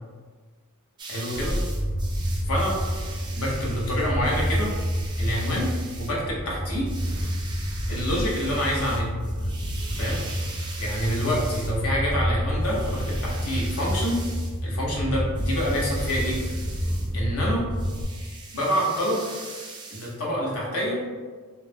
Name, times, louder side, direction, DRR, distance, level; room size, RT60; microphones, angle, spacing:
sound 1, 1.0-6.2 6.9-11.8 12.6-14.6 15.3-17.1 17.7-20.2, right 3 dB, 20° right, 0.3 m, -42 dB
voice 1, 1.1-1.5 2.5-2.8 3.4-4.7 5.2-5.7 6.0-6.9 7.9-9.1 10.0-10.2 10.8-14.2 14.6-16.4 17.1-17.6 18.5-19.2 19.9-21.0, equal, 70° left, -3 dB, 0.7 m, -27 dB
sound 2, 1.3-18.0, equal, 35° left, 0.7 m, -29 dB
2.4 x 2.0 x 3.3 m, 1.5 s
head